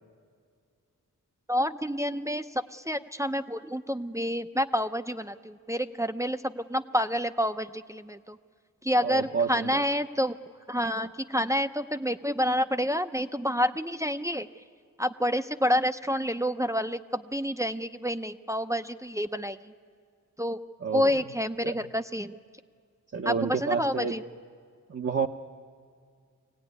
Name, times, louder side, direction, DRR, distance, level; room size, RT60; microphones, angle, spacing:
voice 1, 1.5-8.4 8.8-10.4 10.7-14.5 15.0-19.7 20.4-20.6 20.9-22.4 23.2-24.2, equal, 10° right, 7 dB, 0.6 m, -28 dB
voice 2, 9.0-9.8 20.8-21.2 21.6-21.7 23.1-24.1 24.9-25.3, right 5 dB, 45° right, 1 dB, 0.9 m, -29 dB
23.5 x 18.0 x 9.5 m, 2.1 s
wide cardioid pair, 85°, 33 cm